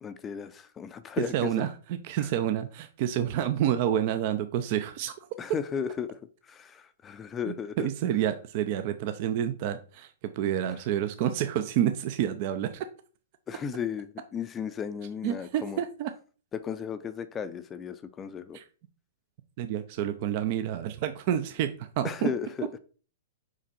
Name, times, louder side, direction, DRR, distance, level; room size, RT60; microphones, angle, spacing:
voice 1, 0.0-1.6 2.2-2.3 5.4-6.2 6.4-7.9 10.7-10.8 13.5-15.8 16.5-18.6 22.0-22.7, left 7 dB, 20° left, 0.5 m, -35 dB
voice 2, 1.3-5.1 7.5-10.1 10.3-12.9 15.2-16.1 18.5-18.6 19.6-22.3, right 10 dB, 45° right, 0.6 m, -29 dB
5.3 x 4.9 x 4.2 m
figure-of-eight pair, 105°, 0 cm